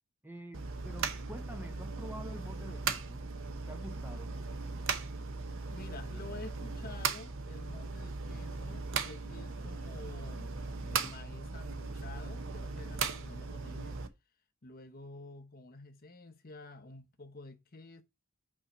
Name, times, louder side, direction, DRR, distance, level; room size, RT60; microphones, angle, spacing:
voice 1, 0.2-3.2 3.5-4.3, equal, 10° right, 0.6 m, -47 dB
sound 1, 0.5-14.1, right 4 dB, 60° right, 0.8 m, -38 dB
voice 2, 5.7-14.0 14.6-18.0, left 2 dB, 40° left, 0.9 m, -50 dB
5.6 x 4.4 x 4.9 m
head